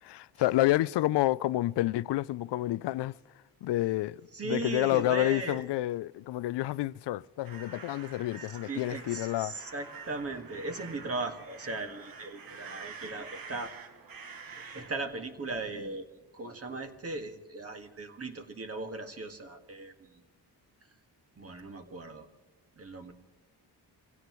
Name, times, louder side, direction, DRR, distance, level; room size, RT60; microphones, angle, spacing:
voice 1, 0.0-3.2 3.6-9.6, left 16 dB, 90° left, 0.5 m, -29 dB
voice 2, 4.3-5.7 8.7-13.7 14.7-16.1 16.3-20.2 21.4-22.3 22.8-23.1, right 3 dB, 35° right, 1.8 m, -38 dB
sound 1, 7.4-14.9, right 5 dB, 55° right, 1.6 m, -47 dB
26.0 x 16.5 x 3.1 m
cardioid pair, 120°, 40 cm